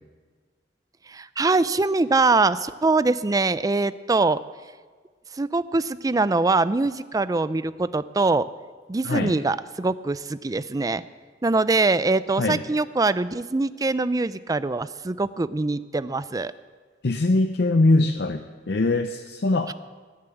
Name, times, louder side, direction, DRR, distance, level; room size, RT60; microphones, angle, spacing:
voice 1, 1.1-4.4 5.4-8.5 8.9-11.0 11.4-16.5 19.7-19.8, right 3 dB, 20° right, 15 dB, 0.4 m, -23 dB
voice 2, 9.0-9.4 12.4-12.6 17.0-19.7, left 2 dB, 65° left, 6 dB, 0.6 m, -22 dB
19.5 x 7.1 x 7.9 m, 1.5 s
head